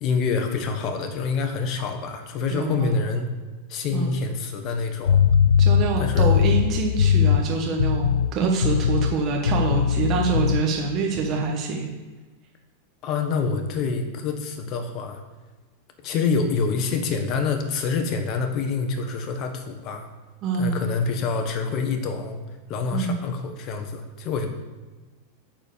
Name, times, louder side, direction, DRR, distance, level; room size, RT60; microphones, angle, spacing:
voice 1, 0.0-3.3 3.7-5.2 6.0-6.4 13.0-15.2 16.0-20.1 20.5-22.4 22.7-24.5, left 4 dB, 45° left, 6 dB, 1.4 m, -26 dB
voice 2, 2.5-3.0 3.9-4.1 5.6-11.9 20.4-20.8 22.9-23.2, right 4 dB, 40° right, 0 dB, 1.4 m, -25 dB
sound 1, 5.1-7.5 7.8-8.3 8.6-9.2 9.4-10.6, left 8 dB, 90° left, 0.3 m, -20 dB
7.8 x 4.6 x 6.8 m, 1.3 s
hypercardioid pair, 110°, 0 cm